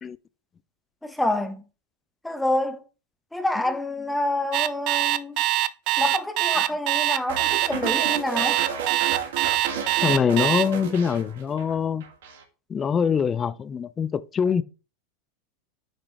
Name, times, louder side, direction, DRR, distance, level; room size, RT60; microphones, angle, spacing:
voice 1, 1.0-1.6 2.2-2.8 3.3-5.4 6.0-8.6, left 1 dB, 5° left, 1.2 m, -27 dB
Alarm, 4.5-10.6, right 15 dB, 50° right, 0.5 m, -23 dB
sound 1, 7.3-11.7 12.0-12.4, right 7 dB, 75° right, 1.5 m, -32 dB
voice 2, 10.0-12.0 12.7-14.6, left 7 dB, 25° left, 0.5 m, -24 dB
9.0 x 3.8 x 3.3 m
hypercardioid pair, 95°, 0 cm